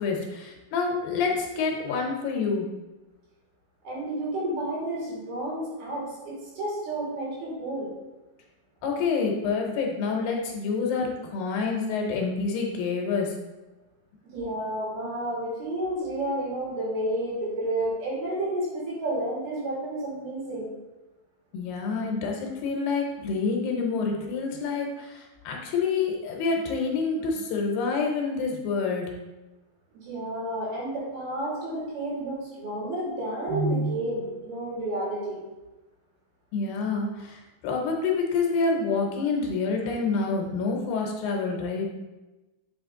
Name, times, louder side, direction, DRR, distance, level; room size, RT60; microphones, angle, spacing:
voice 1, 0.0-2.7 8.8-13.3 21.5-29.1 36.5-41.8, left 4 dB, 75° left, 1 dB, 2.5 m, -27 dB
voice 2, 3.8-7.9 14.3-20.7 29.9-35.4, right 1 dB, 85° right, -6 dB, 4.2 m, -30 dB
7.3 x 4.3 x 3.6 m, 1.1 s
omnidirectional pair, 4.3 m